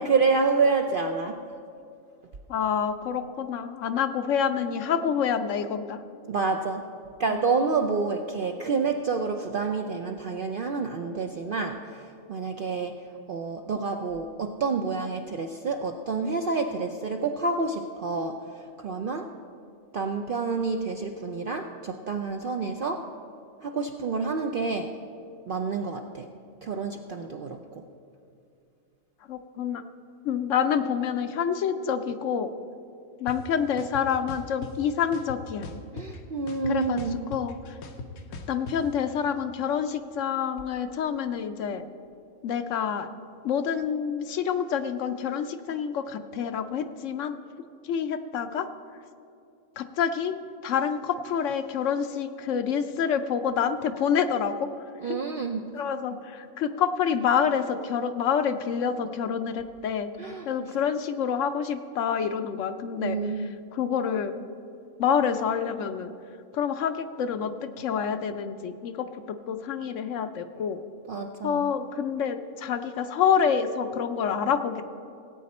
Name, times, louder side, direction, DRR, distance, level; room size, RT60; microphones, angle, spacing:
voice 1, 0.0-1.4 6.3-6.9 7.2-19.3 19.9-23.1 23.6-24.9 25.5-26.3 26.6-27.8 35.9-37.2 55.0-55.7 60.2-60.7 62.9-63.5 71.1-71.7, right 4 dB, 60° right, 4 dB, 0.5 m, -28 dB
voice 2, 2.5-6.0 7.3-7.4 29.3-29.8 30.2-32.5 33.2-35.7 36.7-37.0 37.3-37.8 38.5-41.9 42.4-43.1 43.4-47.4 47.8-48.7 49.8-50.3 50.6-54.7 55.0-55.2 55.7-60.1 60.5-63.2 63.7-64.4 65.0-66.1 66.5-70.8 71.4-74.8, left 7 dB, 70° left, 9 dB, 0.9 m, -27 dB
sound 1, 33.3-33.4 33.8-34.7 35.1-36.2 36.5-38.8, left 3 dB, 90° left, 1.3 m, -39 dB
17.5 x 8.7 x 4.2 m, 2.5 s
omnidirectional pair, 1.5 m